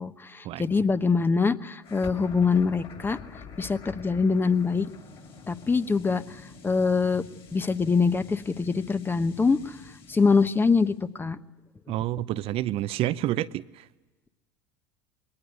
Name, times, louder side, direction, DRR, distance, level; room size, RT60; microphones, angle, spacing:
voice 1, 0.0-3.2 3.6-4.9 5.5-6.2 6.6-7.2 7.5-9.6 10.1-11.4, left 4 dB, 20° left, 1.1 m, -24 dB
sound 1, 1.8-11.0, left 5 dB, 50° left, 6.3 m, -47 dB
voice 2, 11.9-13.8, right 14 dB, 55° right, 0.6 m, -28 dB
22.0 x 18.5 x 9.3 m
hypercardioid pair, 85°, 12 cm